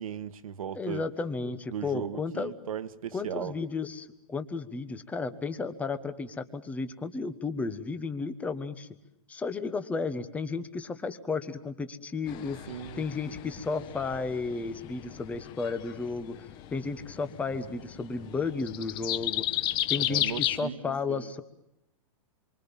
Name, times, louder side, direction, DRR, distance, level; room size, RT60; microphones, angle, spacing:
voice 1, 0.0-1.0 1.7-3.5 12.7-13.0 20.0-21.2, right 9 dB, 85° right, 2.0 m, -37 dB
voice 2, 0.7-2.5 3.1-8.9 9.3-12.6 13.0-19.4 19.9-21.4, left 4 dB, 10° left, 1.3 m, -33 dB
sound 1, 12.3-20.6, left 13 dB, 25° left, 1.1 m, -34 dB
27.0 x 24.5 x 7.3 m
hypercardioid pair, 160°, 17 cm